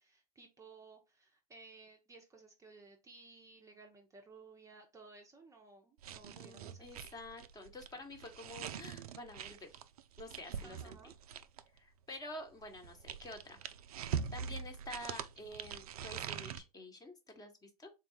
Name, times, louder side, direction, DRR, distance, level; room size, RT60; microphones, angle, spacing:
voice 1, 0.0-7.0 10.6-11.1, right 3 dB, 15° right, 0.6 m, -57 dB
sound 1, 6.0-11.8 12.6-16.6, right 8 dB, 75° right, 0.4 m, -43 dB
voice 2, 6.4-9.7 10.2-11.0 11.7-13.6 14.3-17.9, left 1 dB, 20° left, 1.0 m, -49 dB
3.7 x 2.3 x 4.1 m
hypercardioid pair, 95°, 19 cm